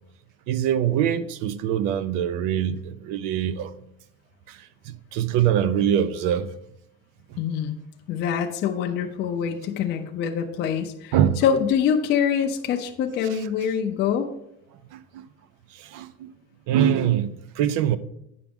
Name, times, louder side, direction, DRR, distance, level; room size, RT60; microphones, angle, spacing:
voice 1, 0.5-3.7 4.5-6.5 11.1-11.4 13.3-13.4 14.9-15.2 15.7-16.3 16.7-18.0, right 10 dB, 65° right, 0.6 m, -24 dB
voice 2, 7.4-7.8 8.1-11.1 11.4-14.3, left 8 dB, 30° left, 0.4 m, -24 dB
8.6 x 5.9 x 3.5 m
cardioid pair, 175°, 35 cm